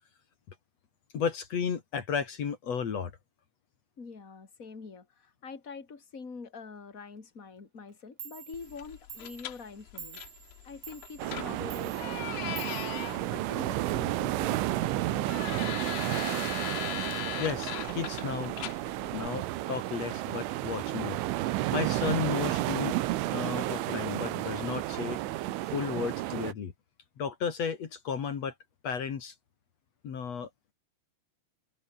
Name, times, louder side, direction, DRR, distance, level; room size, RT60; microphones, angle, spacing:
voice 1, 1.1-3.1 17.4-18.5 19.1-21.2 21.7-23.0 23.3-25.2 25.7-26.7 27.2-28.5 28.8-29.3 30.0-30.5, left 6 dB, 45° left, 2.5 m, -33 dB
voice 2, 4.0-10.2 10.6-16.4, left 4 dB, 20° left, 3.1 m, -45 dB
Clock, 7.9-8.0 8.2-13.8, right 8 dB, 45° right, 3.3 m, -49 dB
sound 1, 8.5-19.3, left 18 dB, 80° left, 3.2 m, -41 dB
sound 2, 11.2-26.5, right 16 dB, 90° right, 3.7 m, -32 dB
omnidirectional pair, 5.4 m